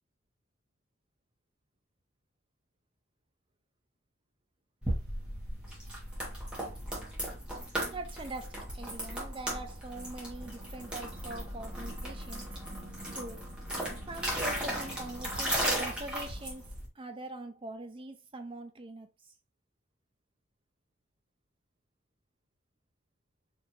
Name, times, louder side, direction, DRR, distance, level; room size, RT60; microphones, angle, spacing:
sound 1, 4.8-16.9, right 1 dB, 5° right, 1.0 m, -36 dB
voice 1, 7.9-12.5 13.1-13.4 14.1-19.1, right 2 dB, 25° right, 0.5 m, -43 dB
4.5 x 2.6 x 2.9 m
head